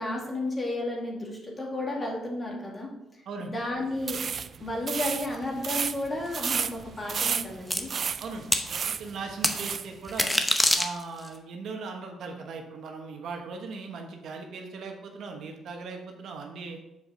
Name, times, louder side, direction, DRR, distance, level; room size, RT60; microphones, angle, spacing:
voice 1, 0.0-2.9 3.4-4.2 4.6-7.9, left 1 dB, 25° left, -2 dB, 2.2 m, -32 dB
sound 1, 4.0-9.9, right 6 dB, 50° right, 0.3 m, -32 dB
sound 2, 7.7-7.8 8.5-8.7 9.4-9.6 10.1-11.3, left 1 dB, 5° left, 0.8 m, -24 dB
voice 2, 8.2-10.4 10.7-16.8, right 4 dB, 70° right, 3 dB, 1.2 m, -39 dB
7.0 x 5.2 x 3.9 m, 0.90 s
cardioid pair, 90°, 0 cm